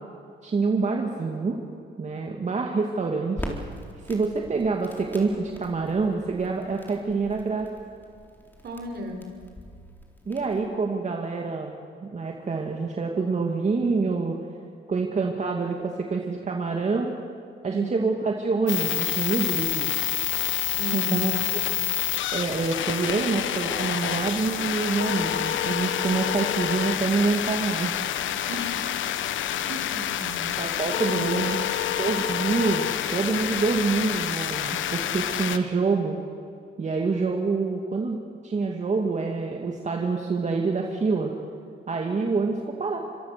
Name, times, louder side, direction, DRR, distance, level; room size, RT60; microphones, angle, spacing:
voice 1, 0.4-1.6 2.0-3.6 4.0-7.7 10.3-11.8 12.0-14.4 14.9-17.2 17.6-19.9 20.9-21.3 22.3-28.0 30.6-31.7 32.0-36.2 36.8-41.3 41.9-43.0, right 4 dB, 35° right, 1 dB, 2.3 m, -26 dB
Crackle, 3.4-10.7, left 1 dB, 10° left, 4.1 m, -42 dB
voice 2, 8.6-9.2 17.6-17.8 20.7-21.3 28.5-28.8 29.6-30.4 31.0-31.5, equal, 55° right, 5 dB, 4.4 m, -35 dB
sound 1, 18.7-35.6, left 10 dB, 75° left, 1.2 m, -28 dB
26.0 x 23.0 x 6.8 m, 2.3 s
cardioid pair, 90°, 20 cm